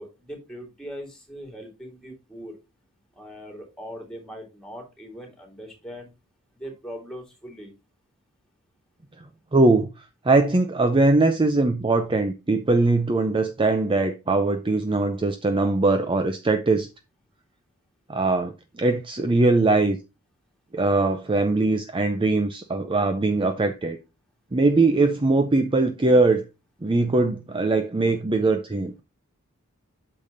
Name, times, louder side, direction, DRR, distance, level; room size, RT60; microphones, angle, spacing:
voice 1, 0.0-2.5 3.1-6.1 6.5-7.7, equal, 5° left, 2.9 m, -40 dB
voice 2, 9.5-16.9 18.1-20.0 20.7-24.0 24.5-26.4 26.8-29.0, right 2 dB, 25° right, 0.6 m, -21 dB
8.5 x 6.7 x 2.6 m
head